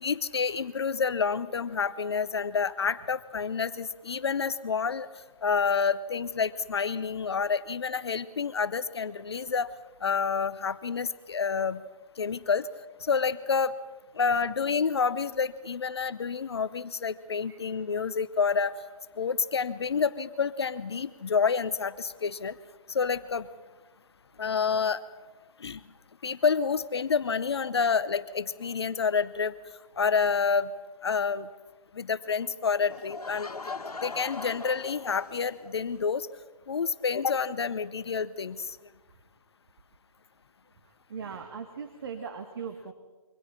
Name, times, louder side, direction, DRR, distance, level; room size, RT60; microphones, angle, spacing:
voice 1, 0.0-5.1 5.4-9.7 10.0-11.8 12.2-12.7 13.0-13.7 14.2-18.7 19.2-22.5 22.9-23.5 24.4-25.0 25.6-25.8 26.2-29.5 30.0-30.7 31.0-31.5 32.0-33.5 34.0-36.3 36.7-38.6, left 5 dB, 45° left, 15 dB, 0.7 m, -28 dB
Laughter / Crowd, 32.9-35.7, left 4 dB, 75° left, 2.0 m, -40 dB
voice 2, 41.1-42.9, right 6 dB, 40° right, 6 dB, 1.5 m, -39 dB
27.5 x 24.0 x 4.4 m, 1.2 s
figure-of-eight pair, 160°, 20 cm